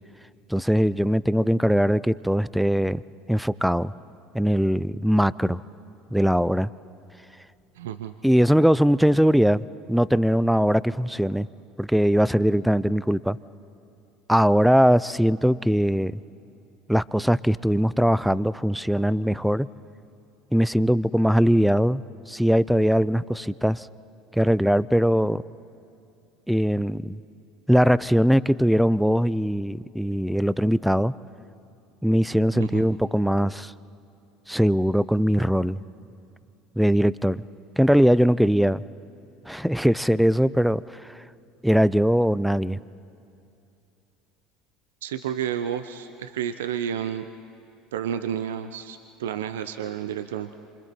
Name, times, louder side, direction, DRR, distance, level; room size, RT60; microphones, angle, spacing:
voice 1, 0.5-3.0 3.3-3.9 4.3-5.6 6.1-6.7 8.2-11.5 11.8-13.4 14.3-16.2 16.9-19.7 20.5-22.0 22.3-23.9 24.3-25.4 26.5-27.2 27.7-31.1 32.0-33.7 34.5-35.8 36.8-37.4 37.8-38.8 39.5-41.2 41.6-42.8, equal, ahead, 19 dB, 0.4 m, -21 dB
voice 2, 7.8-8.1 32.5-32.9 45.0-47.3 47.9-50.5, right 9 dB, 80° right, 10 dB, 0.6 m, -31 dB
27.5 x 25.5 x 4.5 m, 2.6 s
hypercardioid pair, 75°, 0 cm